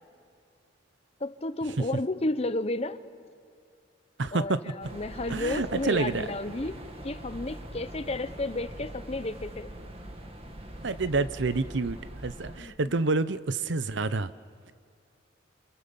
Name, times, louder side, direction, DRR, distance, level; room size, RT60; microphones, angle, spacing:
voice 1, 1.2-3.0 4.3-6.8 7.0-9.7 12.6-12.7, left 2 dB, 35° left, 12 dB, 0.9 m, -32 dB
voice 2, 4.2-4.6 5.3-6.3 10.8-14.3, right 3 dB, 70° right, 14 dB, 0.8 m, -28 dB
sound 1, 4.8-12.6, right 1 dB, 30° right, 1.9 m, -42 dB
28.5 x 28.0 x 7.0 m, 2.3 s
head